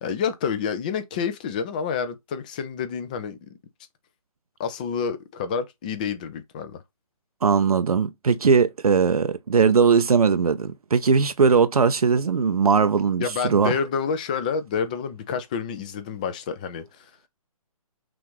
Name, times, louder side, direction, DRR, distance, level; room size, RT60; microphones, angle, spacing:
voice 1, 0.0-3.5 4.6-6.8 13.2-17.1, left 6 dB, 15° left, 0.3 m, -28 dB
voice 2, 7.4-13.7, right 5 dB, 80° right, 0.5 m, -20 dB
6.0 x 2.5 x 3.0 m
figure-of-eight pair, 145°, 19 cm